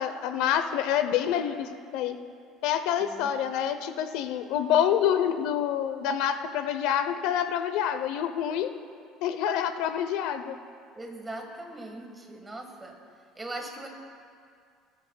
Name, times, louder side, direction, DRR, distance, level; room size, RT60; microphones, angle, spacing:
voice 1, 0.0-2.2 2.6-8.7 9.2-10.6, left 9 dB, 75° left, 9 dB, 0.7 m, -27 dB
voice 2, 3.0-3.3 10.9-13.0 13.3-13.9, right 2 dB, 15° right, 2 dB, 1.5 m, -40 dB
20.5 x 13.0 x 2.3 m, 2.2 s
cardioid pair, 145°, 0 cm